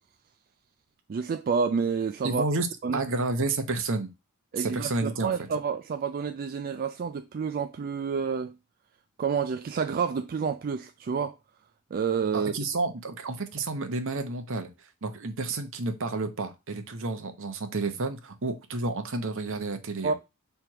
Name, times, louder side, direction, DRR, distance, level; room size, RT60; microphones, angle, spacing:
voice 1, 1.1-2.5 2.8-3.0 4.5-8.5 9.2-11.4 11.9-12.5 20.0-20.1, right 6 dB, 40° right, 0.3 m, -29 dB
voice 2, 2.2-2.7 2.9-4.1 4.6-5.3 12.3-14.7 15.0-20.1, right 3 dB, 60° right, 1.0 m, -30 dB
5.9 x 3.4 x 4.6 m
head